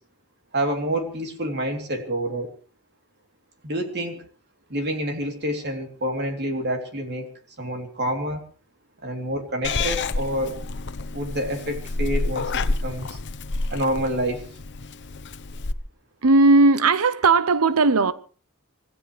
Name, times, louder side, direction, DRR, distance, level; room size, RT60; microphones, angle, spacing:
voice 1, 0.5-2.5 3.6-4.2 4.7-7.3 7.6-8.4 9.0-10.6 11.1-13.2 13.7-14.4, right 1 dB, 50° right, 3.2 m, -28 dB
Purr / Meow, 9.6-15.7, left 3 dB, 55° left, 0.9 m, -29 dB
voice 2, 16.2-18.1, right 3 dB, 75° right, 0.8 m, -17 dB
25.5 x 17.5 x 3.3 m
head